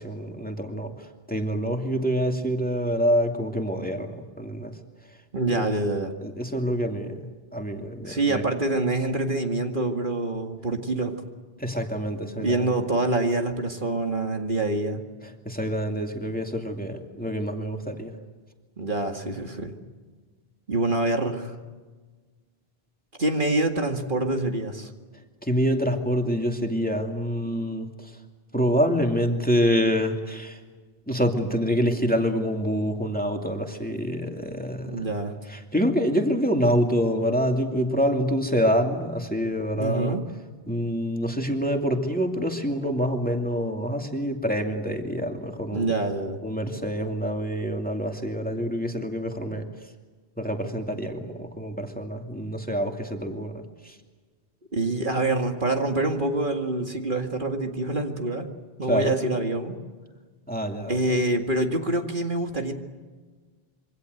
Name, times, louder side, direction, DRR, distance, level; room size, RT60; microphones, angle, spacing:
voice 1, 0.0-4.8 5.5-5.6 6.2-8.4 11.6-12.8 15.2-18.2 25.4-28.2 28.5-30.6 31.1-35.0 35.5-40.2 40.7-45.9 46.4-49.7 50.4-54.0 58.9-59.1 60.5-61.0, equal, 10° left, 3 dB, 2.5 m, -26 dB
voice 2, 5.3-6.1 8.1-11.2 12.4-15.0 18.8-19.7 20.7-21.6 23.2-24.9 34.9-35.3 39.8-40.2 45.7-46.4 54.7-58.5 58.8-59.8 60.9-62.7, right 2 dB, 50° right, 4 dB, 2.3 m, -26 dB
27.0 x 24.5 x 8.0 m, 1.4 s
omnidirectional pair, 1.1 m